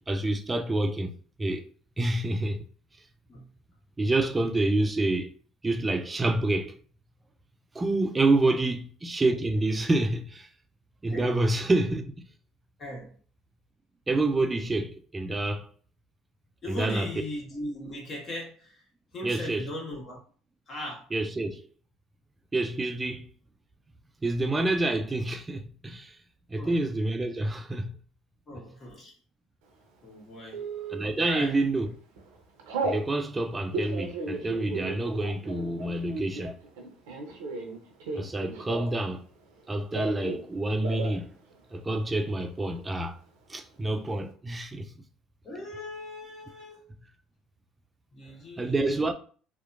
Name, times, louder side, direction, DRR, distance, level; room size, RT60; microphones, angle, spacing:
voice 1, 0.1-1.1 1.4-1.6 2.0-2.7 4.0-5.3 5.6-6.8 7.7-10.5 11.0-12.3 14.1-15.7 16.7-17.1 19.2-19.7 21.1-21.6 22.5-23.3 24.2-26.2 26.5-27.9 30.9-31.9 32.8-36.5 38.1-39.2 39.7-41.3 41.7-43.2 43.5-44.9 48.6-49.1, right 2 dB, 20° right, 0.4 m, -27 dB
voice 2, 12.8-13.1 16.6-18.8 19.1-20.2 20.7-21.1 26.6-26.8 28.5-29.1 30.0-30.6 31.2-31.5 45.4-46.9 48.1-49.1, left 1 dB, 45° left, 1.4 m, -38 dB
Telephone, 30.5-31.0 31.6-31.9 32.2-33.0 33.6-39.1 39.4-40.5 40.7-41.2 41.5-41.6 41.9-42.4, right 3 dB, 80° right, 0.6 m, -35 dB
2.8 x 2.1 x 2.4 m
hypercardioid pair, 70°, 0 cm